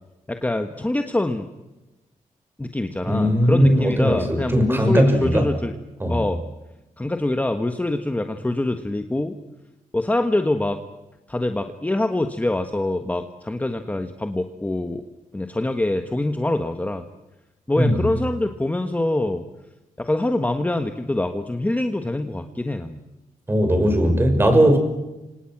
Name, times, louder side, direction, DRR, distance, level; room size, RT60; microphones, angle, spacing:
voice 1, 0.3-1.5 2.6-5.8 6.1-6.4 7.0-9.4 9.9-10.8 11.3-15.0 15.3-17.0 17.7-19.4 20.0-23.0, left 1 dB, 10° left, 6 dB, 1.4 m, -24 dB
voice 2, 3.1-5.5 6.0-6.2 17.8-18.0 23.5-24.8, equal, 15° right, 6 dB, 6.0 m, -18 dB
29.0 x 26.5 x 6.1 m, 1.0 s
wide cardioid pair, 130°, 14 cm